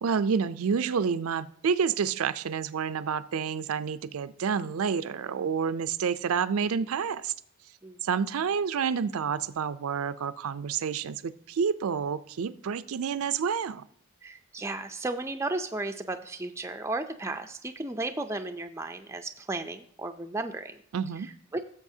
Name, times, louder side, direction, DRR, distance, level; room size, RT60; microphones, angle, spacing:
voice 1, 0.0-7.3 8.0-13.8 20.9-21.3, right 6 dB, 75° right, 13 dB, 0.4 m, -29 dB
voice 2, 14.2-20.8 21.2-21.6, right 2 dB, 10° right, 6 dB, 0.4 m, -34 dB
15.5 x 7.1 x 2.7 m, 0.64 s
head